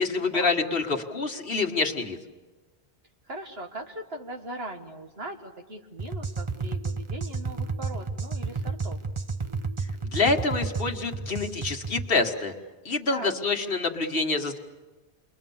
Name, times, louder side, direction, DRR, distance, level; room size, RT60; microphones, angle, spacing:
voice 1, 0.0-2.2 10.1-12.5 12.9-14.6, left 3 dB, 60° left, 2 dB, 1.7 m, -26 dB
voice 2, 3.3-9.0 13.1-13.3, right 1 dB, 70° right, 3 dB, 2.2 m, -39 dB
sound 1, 6.0-12.1, right 4 dB, 30° right, 0.8 m, -32 dB
29.5 x 22.5 x 7.1 m, 1.3 s
omnidirectional pair, 1.1 m